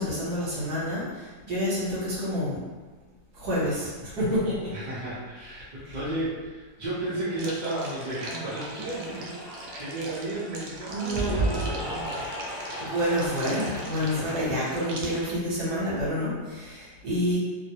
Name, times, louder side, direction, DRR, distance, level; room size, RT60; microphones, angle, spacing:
voice 1, 0.0-2.6 3.3-4.8 5.8-6.0 9.9-10.2 10.9-11.5 12.8-17.4, equal, 65° right, -7 dB, 1.4 m, -28 dB
voice 2, 4.7-12.9 14.0-14.2, right 1 dB, 45° right, -12 dB, 0.6 m, -34 dB
Cheering / Applause, 6.9-14.6, right 2 dB, 55° left, 0.7 m, -36 dB
sound 1, 7.4-15.4, right 2 dB, 85° right, 1.3 m, -41 dB
3.1 x 2.1 x 2.7 m, 1.3 s
omnidirectional pair, 2.0 m